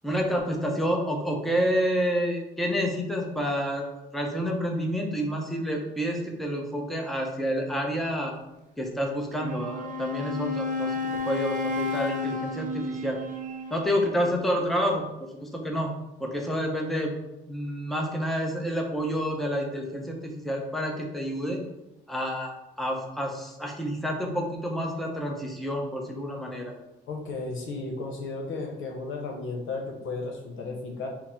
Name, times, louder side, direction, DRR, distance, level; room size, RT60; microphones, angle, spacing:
voice 1, 0.0-3.9 4.1-8.3 8.8-10.9 11.3-13.2 13.7-15.9 16.2-17.1 17.5-21.6 22.1-26.7, equal, ahead, 1 dB, 0.7 m, -29 dB
Wind instrument woodwind instrument, 9.3-14.3, left 3 dB, 40° right, 0.6 m, -32 dB
voice 2, 27.1-31.1, left 3 dB, 80° left, 1 dB, 0.9 m, -34 dB
3.7 x 2.1 x 4.3 m, 0.94 s
cardioid pair, 90°, 20 cm